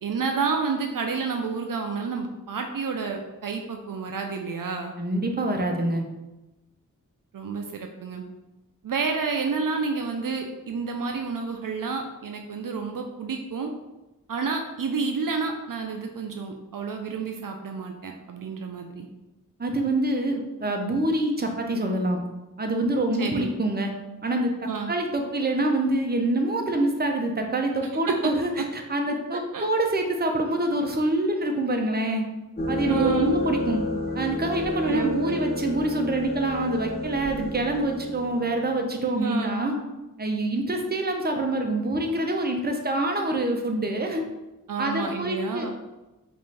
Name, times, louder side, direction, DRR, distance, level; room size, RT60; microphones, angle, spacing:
voice 1, 0.0-4.9 7.3-8.2 8.8-13.7 14.3-19.1 23.2-23.5 24.7-24.9 28.1-28.2 29.5-29.7 32.9-33.4 34.9-35.4 39.1-39.6 44.7-45.7, right 5 dB, 70° right, 4 dB, 0.5 m, -30 dB
voice 2, 5.0-6.0 19.6-22.2 22.6-23.9 24.2-24.5 24.9-32.2 32.7-33.8 34.1-39.8 40.2-44.3 44.8-45.7, right 1 dB, 30° right, 3 dB, 0.7 m, -26 dB
sound 1, 32.6-38.8, left 1 dB, 30° left, 0.7 m, -31 dB
5.2 x 2.6 x 3.3 m, 1.0 s
wide cardioid pair, 50°, 34 cm